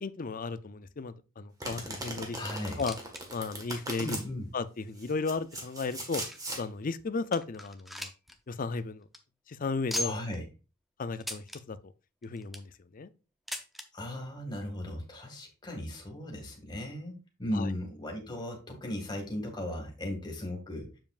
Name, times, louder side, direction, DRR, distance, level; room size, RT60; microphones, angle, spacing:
voice 1, 0.0-2.4 2.8-2.9 3.3-4.2 4.5-6.2 6.6-8.1 8.5-9.0 9.5-10.2 11.0-11.8 12.2-13.1 17.5-17.7, left 4 dB, 40° left, 0.5 m, -34 dB
Domestic sounds home sounds, 1.6-4.2 5.0-6.6, right 1 dB, 15° right, 1.6 m, -39 dB
voice 2, 2.4-2.8 4.0-4.5 10.0-10.4 13.9-20.9, left 1 dB, 20° left, 2.1 m, -37 dB
sound 1, 2.8-3.2 3.5-3.6 4.3-4.4 5.1-6.6 7.0-7.1 7.3-8.4 8.7-8.8 9.0-9.2 9.9-10.4 11.2-11.6 12.2-12.7 13.5-13.9 14.8-14.9 15.1-15.2 16.0-16.1, left 1 dB, ahead, 0.7 m, -38 dB
7.5 x 7.0 x 2.5 m
head